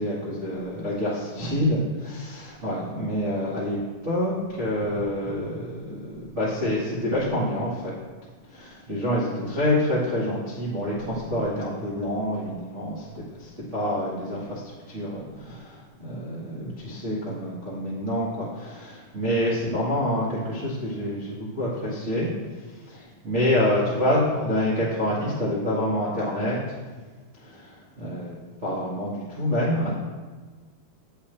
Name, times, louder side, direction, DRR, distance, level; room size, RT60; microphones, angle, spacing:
voice 1, 0.0-3.8 4.0-7.9 8.5-13.1 13.3-14.6 14.9-22.3 22.9-26.6 27.4-30.0, left 1 dB, 45° right, -9 dB, 0.8 m, -27 dB
10.0 x 8.0 x 3.4 m, 1.4 s
omnidirectional pair, 4.6 m